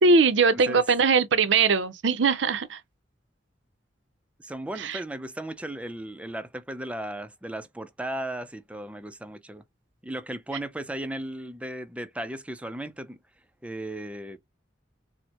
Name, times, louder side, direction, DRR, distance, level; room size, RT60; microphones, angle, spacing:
voice 1, 0.0-2.8 4.8-5.0, right 4 dB, 75° right, 0.6 m, -21 dB
voice 2, 0.5-0.8 4.4-9.6 10.0-13.2 13.6-14.4, right 1 dB, 5° right, 0.4 m, -36 dB
4.3 x 2.1 x 2.8 m
head